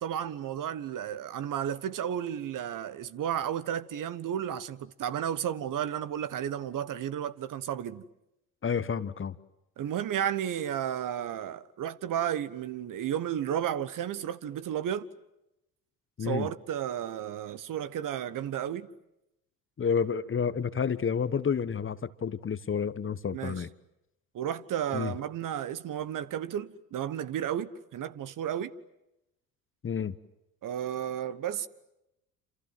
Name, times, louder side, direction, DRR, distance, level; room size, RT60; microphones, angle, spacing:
voice 1, 0.0-8.0 9.8-15.1 16.2-18.9 23.3-23.6 24.3-28.7 30.6-31.7, right 10 dB, 45° right, 1.4 m, -33 dB
voice 2, 8.6-9.3 16.2-16.5 19.8-23.7 24.9-25.1 29.8-30.2, left 6 dB, 30° left, 1.3 m, -30 dB
28.0 x 27.5 x 7.7 m
hypercardioid pair, 60°, 43 cm